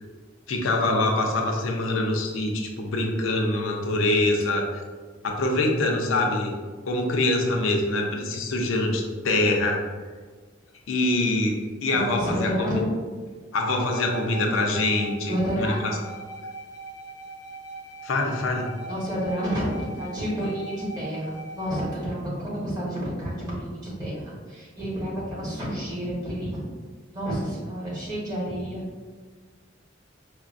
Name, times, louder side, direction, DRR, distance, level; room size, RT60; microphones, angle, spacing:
voice 1, 0.5-4.6 5.2-6.5 6.9-9.8 10.9-12.7 13.5-15.3 15.6-15.7 18.0-18.7, left 2 dB, 90° left, 1 dB, 0.5 m, -24 dB
voice 2, 11.9-12.8 13.1-13.2 15.3-15.8 18.8-26.6 27.1-28.9, equal, 20° right, -8 dB, 1.2 m, -30 dB
sound 1, 13.6-21.8, right 3 dB, 15° left, 0.5 m, -40 dB
4.7 x 2.1 x 2.5 m, 1.5 s
head